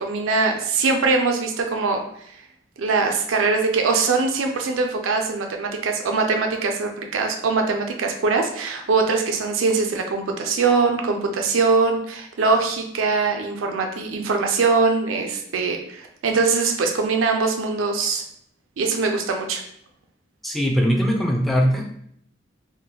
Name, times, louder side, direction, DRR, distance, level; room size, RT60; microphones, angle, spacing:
voice 1, 0.0-2.0 2.8-18.2 18.8-19.6, right 4 dB, 85° right, 4 dB, 0.4 m, -22 dB
voice 2, 20.4-22.0, equal, ahead, 0 dB, 0.4 m, -21 dB
3.6 x 2.1 x 2.9 m, 0.69 s
head